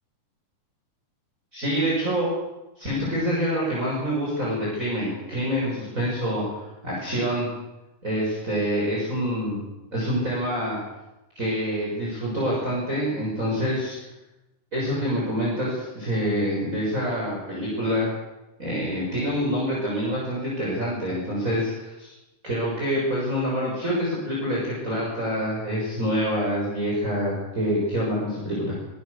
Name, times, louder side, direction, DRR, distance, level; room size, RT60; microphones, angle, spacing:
voice 1, 1.5-2.3 2.8-6.4 6.8-7.5 8.0-9.6 9.9-10.8 11.4-14.0 14.7-18.1 18.6-22.1 22.4-28.7, equal, 25° right, -5 dB, 7.2 m, -26 dB
24.5 x 20.5 x 6.8 m, 0.98 s
omnidirectional pair, 3.6 m